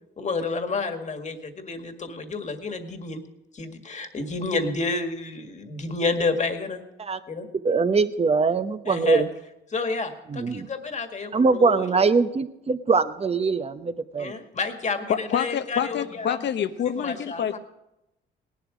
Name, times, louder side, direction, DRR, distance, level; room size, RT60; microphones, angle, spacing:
voice 1, 0.2-3.2 3.5-6.8 7.3-7.5 8.9-9.2 9.7-11.9 14.2-16.4 17.0-17.6, left 3 dB, 35° left, 6 dB, 1.8 m, -30 dB
voice 2, 7.6-9.3 10.3-10.7 11.3-14.3, right 4 dB, 30° right, 11 dB, 0.9 m, -22 dB
voice 3, 15.1-17.6, left 9 dB, 65° left, 11 dB, 0.9 m, -27 dB
18.0 x 11.5 x 5.0 m, 0.89 s
cardioid pair, 90°, 20 cm